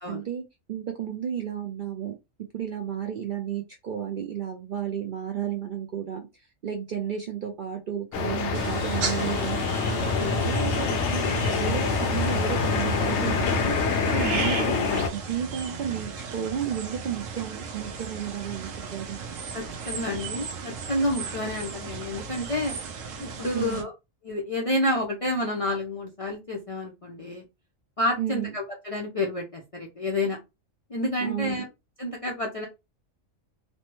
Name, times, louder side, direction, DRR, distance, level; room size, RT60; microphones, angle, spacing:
voice 1, 0.1-2.1 2.5-6.3 6.6-9.6 9.9-19.2 23.5-23.8 28.2-28.5 31.2-31.6, right 9 dB, 60° right, 3 dB, 0.5 m, -33 dB
sound 1, 8.1-15.1, left 5 dB, 70° left, 0.8 m, -26 dB
sound 2, 8.5-23.8, right 5 dB, 80° right, 1.0 m, -35 dB
voice 2, 19.5-22.7 23.2-23.9 24.2-27.4 28.0-30.4 30.9-31.7 32.0-32.7, left 1 dB, 45° left, -1 dB, 0.4 m, -29 dB
3.2 x 2.1 x 2.9 m, 0.23 s
omnidirectional pair, 1.3 m